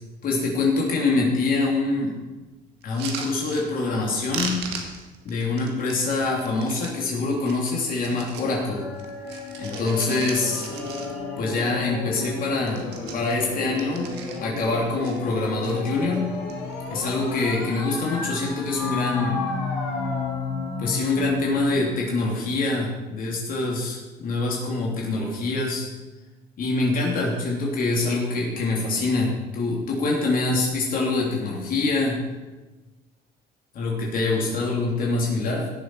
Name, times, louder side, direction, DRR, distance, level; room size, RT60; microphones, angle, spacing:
voice 1, 0.2-2.1 2.8-4.7 5.2-8.9 9.6-10.7 11.4-14.2 14.4-16.4 16.9-19.4 20.8-25.9 26.6-32.2 33.7-35.7, left 3 dB, 55° left, -2 dB, 3.1 m, -25 dB
sound 1, 2.8-4.1 4.3-7.0 7.4-8.6 8.9-11.4 11.8-11.9 12.1-12.4 12.6-14.7 15.0-15.7 16.3-16.8 17.0-17.6 18.4-18.7, right 6 dB, 85° right, 1.9 m, -38 dB
sound 2, 8.4-22.0, left 3 dB, 80° left, 4.9 m, -32 dB
17.0 x 7.2 x 4.8 m, 1.2 s
cardioid pair, 110°, 17 cm